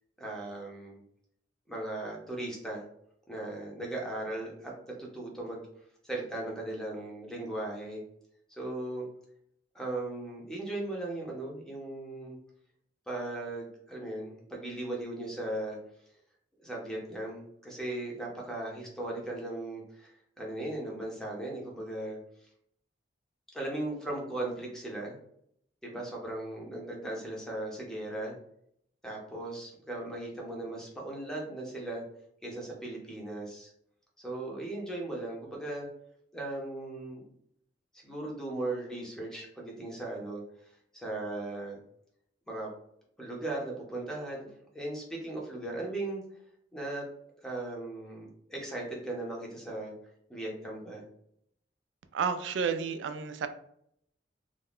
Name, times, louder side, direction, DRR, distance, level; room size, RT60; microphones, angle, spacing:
voice 1, 0.2-1.0 1.7-2.8 3.3-4.7 5.0-5.6 6.0-8.0 8.5-9.1 9.7-12.4 13.1-15.8 16.6-22.2 23.5-25.2 25.8-28.3 29.0-32.0 32.4-33.7 34.2-35.9 36.3-37.2 37.9-40.4 40.9-41.8 42.5-42.7 43.2-44.5 44.7-46.2 46.7-47.1 47.4-49.9 50.3-51.1, right 2 dB, 5° left, -2 dB, 0.6 m, -37 dB
voice 2, 52.1-53.5, right 6 dB, 90° right, 9 dB, 0.3 m, -31 dB
2.4 x 2.1 x 3.4 m, 0.71 s
head